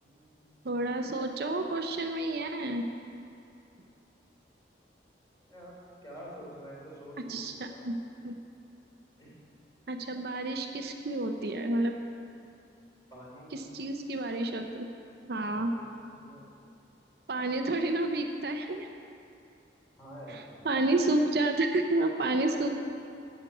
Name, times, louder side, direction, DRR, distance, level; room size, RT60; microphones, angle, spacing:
voice 1, 0.0-0.7 5.4-7.8 9.2-9.4 13.1-13.6 15.5-16.4 20.0-20.7, equal, 20° left, -6 dB, 3.2 m, -48 dB
voice 2, 0.6-2.8 7.3-8.0 8.2-8.4 9.9-11.9 13.5-14.9 15.3-15.7 17.3-18.9 20.3-22.7, right 2 dB, 60° right, 4 dB, 0.7 m, -30 dB
10.5 x 6.9 x 8.4 m, 2.6 s
head